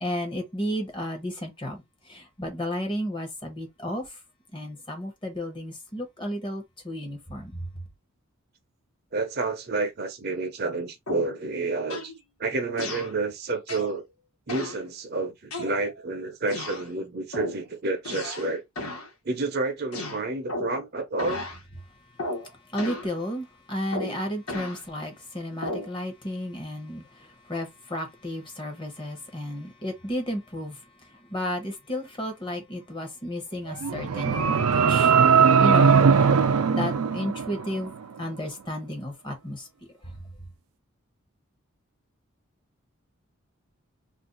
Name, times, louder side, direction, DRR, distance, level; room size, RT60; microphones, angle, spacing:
voice 1, 0.0-1.8 2.1-4.1 4.5-7.6 22.7-27.0 27.5-30.8 31.3-35.1 35.6-36.0 36.7-37.9 38.2-39.7, equal, 20° left, 0.8 m, -32 dB
voice 2, 9.1-12.1 12.4-14.0 14.5-18.6 19.2-21.5, right 3 dB, 45° right, 0.6 m, -29 dB
sound 1, 11.1-11.4 11.9-12.2 12.8-13.1 13.7-14.0 14.5-14.8 15.5-16.0 16.5-16.9 17.3-17.6 18.0-18.5 18.8-19.1 19.9-20.8 21.2-21.6 22.2-22.5 22.8-23.1 23.9-24.8 25.6-25.9, left 1 dB, 80° left, 1.1 m, -34 dB
sound 2, 33.7-37.9, right 6 dB, 90° right, 0.5 m, -20 dB
2.5 x 2.3 x 3.8 m
head